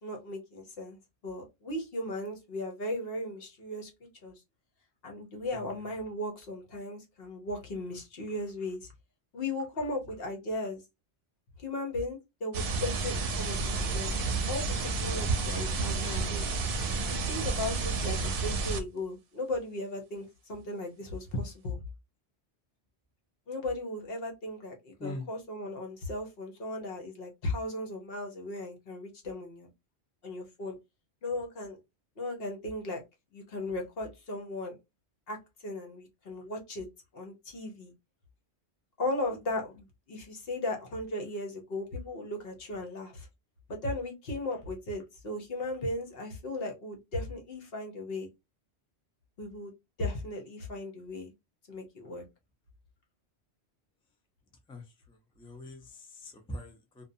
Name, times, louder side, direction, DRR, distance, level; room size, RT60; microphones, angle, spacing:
voice 1, 0.0-4.4 5.0-8.9 9.3-10.8 11.6-16.5 17.1-21.8 23.5-29.7 30.2-30.8 31.2-31.8 32.2-33.0 33.3-34.8 35.3-36.9 37.1-37.9 39.0-43.3 43.7-48.3 49.4-49.7 50.0-51.3 51.7-52.2, left 1 dB, 60° left, 1.0 m, -37 dB
sound 1, 12.5-18.8, right 3 dB, 60° right, 0.7 m, -30 dB
voice 2, 55.4-57.0, left 1 dB, 10° left, 0.3 m, -42 dB
2.6 x 2.2 x 2.6 m
omnidirectional pair, 1.1 m